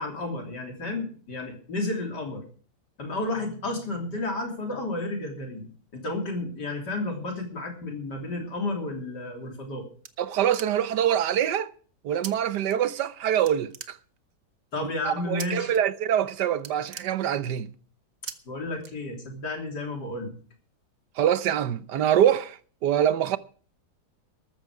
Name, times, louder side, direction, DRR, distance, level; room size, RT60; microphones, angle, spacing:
voice 1, 0.0-2.4 3.0-9.9 14.7-15.7 18.5-20.4, left 2 dB, 80° left, 3.8 m, -32 dB
sound 1, 9.4-11.1 12.2-12.3 12.7-13.2 13.5-14.4 15.4-15.8 16.1-16.3 16.5-17.7 18.3-18.4 18.8-19.5, right 7 dB, 55° right, 1.3 m, -41 dB
voice 2, 10.2-11.7 12.0-14.0 15.0-17.7 21.2-22.6 22.8-23.4, right 10 dB, 80° right, 1.4 m, -24 dB
13.5 x 13.5 x 4.8 m
omnidirectional pair, 1.8 m